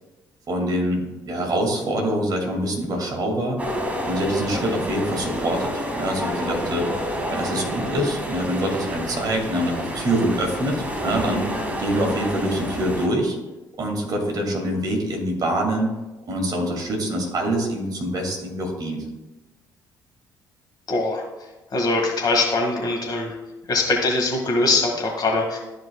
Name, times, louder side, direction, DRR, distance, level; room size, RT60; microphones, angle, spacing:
voice 1, 0.5-3.6 4.0-6.9 7.3-11.4 11.8-13.4 13.8-15.9 16.3-19.0, right 1 dB, 40° right, 1 dB, 2.1 m, -25 dB
sound 1, 3.6-13.1, equal, 15° right, 1.7 m, -29 dB
voice 2, 20.9-21.2 21.7-23.3 23.7-25.6, left 2 dB, 45° left, 0 dB, 1.9 m, -22 dB
13.0 x 4.9 x 2.3 m, 1.1 s
figure-of-eight pair, 50°, 10 cm